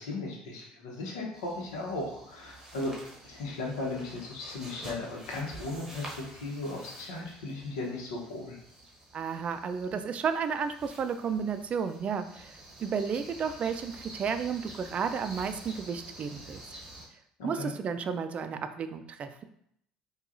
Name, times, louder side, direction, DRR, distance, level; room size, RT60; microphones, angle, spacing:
voice 1, 0.0-2.9 3.2-8.6 17.4-17.7, left 2 dB, 90° left, -1 dB, 0.9 m, -36 dB
sound 1, 1.3-17.1, right 1 dB, 15° right, 1.0 m, -49 dB
voice 2, 9.1-16.6 17.4-19.4, right 6 dB, 45° right, 9 dB, 0.3 m, -32 dB
4.7 x 2.3 x 2.5 m, 0.71 s
supercardioid pair, 80°, 3 cm